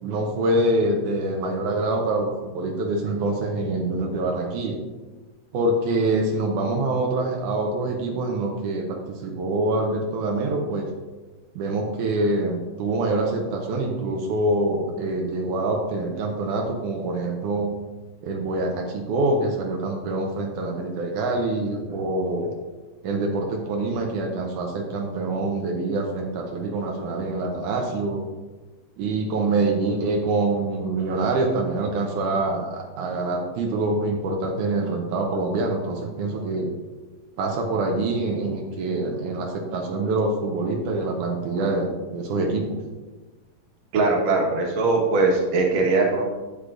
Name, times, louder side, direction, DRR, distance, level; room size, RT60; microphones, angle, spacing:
voice 1, 0.0-4.8 5.5-10.9 11.6-17.7 18.2-22.5 23.0-28.2 29.0-36.7 37.4-42.8, right 2 dB, 90° right, 1 dB, 2.3 m, -25 dB
voice 2, 43.9-46.3, right 3 dB, 70° right, -1 dB, 2.6 m, -21 dB
9.4 x 8.4 x 2.5 m, 1.2 s
omnidirectional pair, 3.4 m